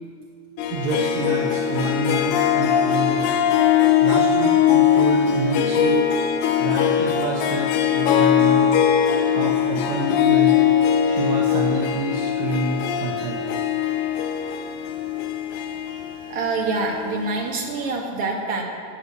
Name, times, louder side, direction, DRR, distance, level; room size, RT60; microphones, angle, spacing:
Harp, 0.6-17.4, left 9 dB, 85° left, 2.3 m, -21 dB
voice 1, 0.7-3.3 4.0-6.1 6.6-8.8 9.3-10.6 11.1-13.4, right 3 dB, 70° right, 0 dB, 2.3 m, -27 dB
voice 2, 16.3-18.6, right 3 dB, 50° right, -1 dB, 2.7 m, -25 dB
18.0 x 7.0 x 8.1 m, 2.3 s
omnidirectional pair, 3.4 m